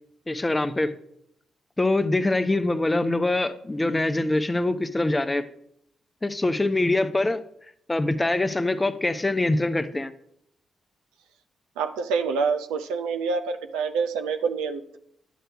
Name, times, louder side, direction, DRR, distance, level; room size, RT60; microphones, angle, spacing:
voice 1, 0.3-0.9 1.8-5.5 6.2-7.4 7.9-10.1, left 2 dB, 20° left, 10 dB, 0.7 m, -24 dB
voice 2, 11.8-15.0, right 5 dB, 90° right, 7 dB, 0.4 m, -27 dB
10.0 x 7.8 x 2.3 m, 0.72 s
supercardioid pair, 50°, 0 cm